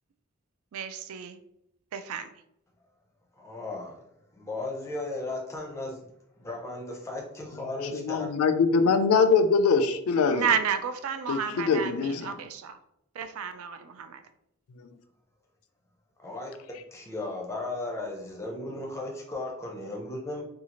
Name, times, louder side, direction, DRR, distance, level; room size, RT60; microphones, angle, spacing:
voice 1, 0.7-1.4 1.9-2.3 10.3-12.8 13.1-14.2, right 7 dB, 80° right, 0.3 m, -31 dB
voice 2, 3.4-4.1 4.3-6.1 6.4-8.3 16.2-20.4, left 2 dB, 15° left, 0.5 m, -36 dB
voice 3, 7.9-10.5 11.3-12.3 14.8-15.0, left 5 dB, 85° left, 0.3 m, -23 dB
2.7 x 2.4 x 2.8 m
head